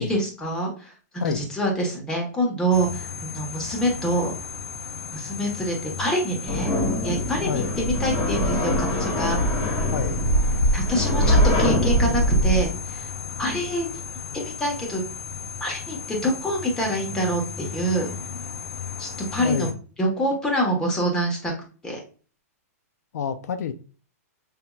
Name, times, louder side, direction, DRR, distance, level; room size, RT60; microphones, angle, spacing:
voice 1, 0.0-4.3 5.1-6.7 7.0-9.4 10.7-13.1 13.4-13.9 14.6-15.0 15.6-18.1 19.0-19.7 20.0-21.5 21.8-22.0, right 1 dB, 10° left, 1.2 m, -26 dB
voice 2, 1.2-1.5 7.5-7.7 9.9-10.2 19.4-19.8 23.1-23.7, left 7 dB, 80° left, 0.4 m, -28 dB
sound 1, 2.7-19.7, left 5 dB, 60° left, 0.9 m, -34 dB
sound 2, 6.5-12.6, equal, 30° left, 1.4 m, -22 dB
5.7 x 2.7 x 2.3 m
hypercardioid pair, 155°, 9 cm